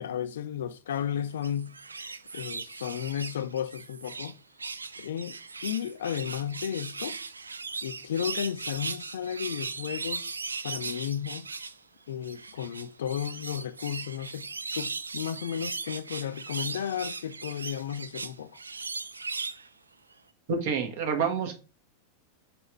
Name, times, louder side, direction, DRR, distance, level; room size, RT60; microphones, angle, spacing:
voice 1, 0.0-1.7 2.3-4.4 5.0-5.4 5.6-7.2 7.8-10.3 10.6-11.5 12.1-14.5 14.7-18.6, left 9 dB, 60° left, 0.4 m, -33 dB
sound 1, 1.3-4.3 4.6-11.8 12.2-19.7 20.1-20.2, right 4 dB, 75° right, 0.4 m, -38 dB
voice 2, 20.5-21.5, right 6 dB, 55° right, 1.5 m, -28 dB
5.0 x 4.3 x 4.4 m
figure-of-eight pair, 90°, 0 cm